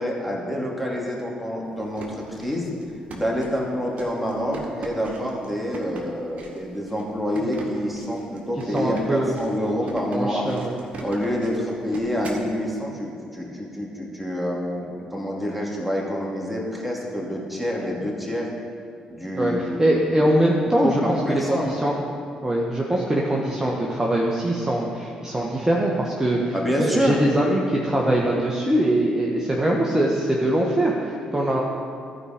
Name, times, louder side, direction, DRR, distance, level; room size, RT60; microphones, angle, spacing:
voice 1, 0.0-2.7 3.1-10.5 11.0-18.5 19.1-20.3 20.8-21.8 26.5-27.2, equal, ahead, -3 dB, 2.7 m, -27 dB
sound 1, 1.7-12.5, right 2 dB, 50° right, 1.7 m, -39 dB
voice 2, 8.7-9.3 10.1-10.8 19.3-19.5 19.8-21.0 21.3-21.9 22.4-31.6, right 1 dB, 20° right, -3 dB, 1.4 m, -22 dB
14.0 x 4.9 x 5.1 m, 2.3 s
hypercardioid pair, 45°, 3 cm